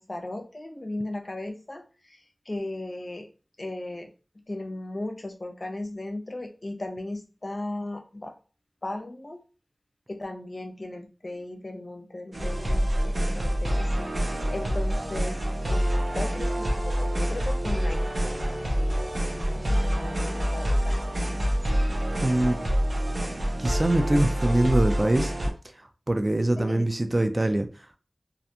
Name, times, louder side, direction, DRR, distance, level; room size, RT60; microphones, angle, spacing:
voice 1, 0.0-3.3 3.6-4.1 4.5-8.3 8.8-9.4 10.1-19.0 19.3-21.1 26.6-26.9, left 1 dB, 55° left, 0.5 m, -37 dB
sound 1, 12.3-25.5, equal, 90° right, 0.6 m, -26 dB
voice 2, 22.2-22.6 23.6-25.3 25.7-27.9, right 1 dB, 40° right, 0.3 m, -24 dB
2.4 x 2.2 x 2.8 m
wide cardioid pair, 40°, 0 cm